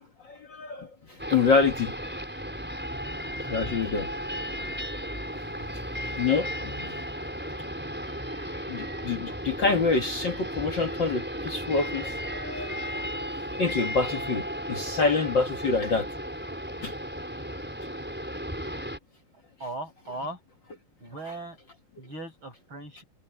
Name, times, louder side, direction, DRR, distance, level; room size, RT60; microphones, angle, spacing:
voice 1, 0.2-1.9 3.5-4.1 6.2-6.9 8.7-13.1 13.6-16.1 16.8-16.9, left 4 dB, 55° left, 1.3 m, -27 dB
sound 1, 1.2-19.0, equal, 5° right, 4.8 m, -35 dB
voice 2, 19.6-20.4 21.0-21.6 22.0-23.0, right 1 dB, 30° right, 8.8 m, -38 dB
omnidirectional pair, 4.4 m